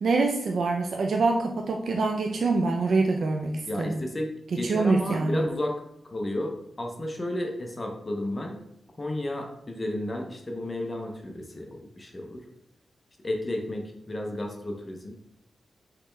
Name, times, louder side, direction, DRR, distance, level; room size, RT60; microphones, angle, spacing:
voice 1, 0.0-4.0 4.5-5.4, right 3 dB, 70° right, 2 dB, 0.4 m, -25 dB
voice 2, 3.7-5.8 6.1-8.6 9.0-12.4 13.2-15.1, left 1 dB, 25° left, 2 dB, 0.6 m, -32 dB
5.0 x 3.1 x 3.2 m, 0.76 s
wide cardioid pair, 140°, 0 cm